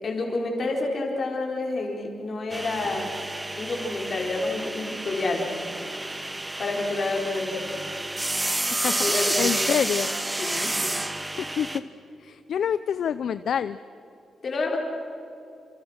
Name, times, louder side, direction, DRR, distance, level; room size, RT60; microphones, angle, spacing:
voice 1, 0.0-3.1 3.6-5.4 6.6-7.7 8.8-9.7 10.4-10.7 14.4-14.8, left 2 dB, 40° left, 1 dB, 4.5 m, -29 dB
sound 1, 2.5-11.8, right 2 dB, 10° right, 1.2 m, -30 dB
voice 2, 8.5-10.1 11.4-11.8 12.2-13.8, left 8 dB, 60° left, 13 dB, 0.5 m, -27 dB
29.0 x 28.0 x 6.5 m, 2.7 s
wide cardioid pair, 180°, 0 cm